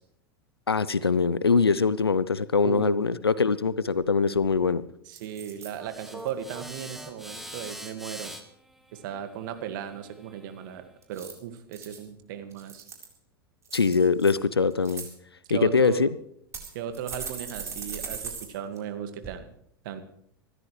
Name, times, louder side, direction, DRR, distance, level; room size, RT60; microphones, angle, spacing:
voice 1, 0.7-4.8 13.7-15.1 15.5-16.1, left 5 dB, 85° left, 18 dB, 0.7 m, -23 dB
voice 2, 2.6-3.0 5.1-8.3 8.9-10.8 11.1-12.8 15.5-16.1 16.7-19.5 19.8-20.0, right 9 dB, 55° right, 8 dB, 2.0 m, -36 dB
sound 1, 4.3-4.7 5.1-5.7 6.2-6.5 11.0-12.0 12.5-13.2 13.7-14.3 14.7-15.1 15.8-15.9 16.5-18.5 18.8-18.9 19.2-19.3, right 6 dB, 20° right, 4.1 m, -39 dB
sound 2, 5.8-10.9, equal, ahead, 1.9 m, -44 dB
26.5 x 13.0 x 3.3 m, 0.71 s
figure-of-eight pair, 90°, 13 cm